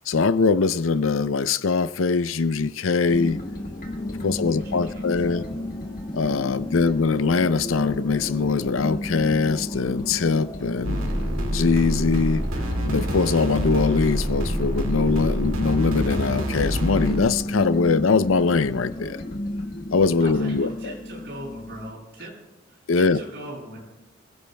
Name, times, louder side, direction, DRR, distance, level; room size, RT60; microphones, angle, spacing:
voice 1, 0.1-3.4 4.2-5.4 6.1-11.0 11.5-12.4 12.8-19.2 19.9-20.9 22.9-23.2, left 4 dB, 80° left, 0.5 m, -22 dB
sound 1, 3.0-19.3, left 1 dB, 20° left, 4.7 m, -42 dB
sound 2, 3.1-21.9, left 1 dB, 45° left, 1.3 m, -34 dB
voice 2, 4.2-5.6 6.6-6.9 20.2-22.3 22.7-23.8, right 1 dB, 60° right, 7.4 m, -40 dB
sound 3, 10.8-17.3, equal, 85° right, 2.3 m, -26 dB
29.5 x 16.0 x 2.3 m
head